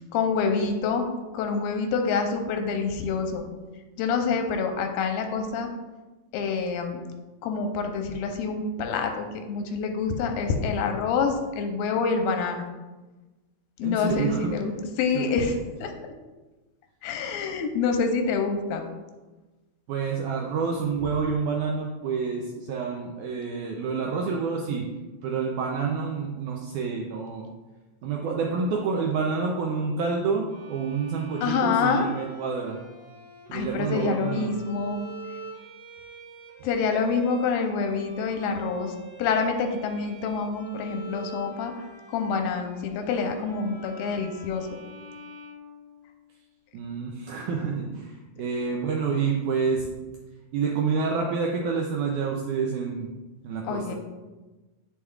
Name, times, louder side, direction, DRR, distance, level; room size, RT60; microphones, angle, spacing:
voice 1, 0.1-3.5 4.0-5.7 6.3-7.0 7.4-12.7 13.8-15.9 17.0-18.8 31.4-32.1 33.5-35.0 36.6-44.7 53.6-53.9, left 5 dB, 90° left, 4 dB, 2.5 m, -27 dB
voice 2, 13.8-14.5 15.1-15.3 19.9-24.9 25.2-27.5 28.0-32.8 33.5-34.5 46.7-49.8 50.5-53.1 53.4-53.9, right 5 dB, 85° right, 0 dB, 1.7 m, -28 dB
Bowed string instrument, 30.5-46.3, right 3 dB, 50° right, 2.1 m, -45 dB
8.7 x 6.4 x 2.4 m, 1.2 s
omnidirectional pair, 4.2 m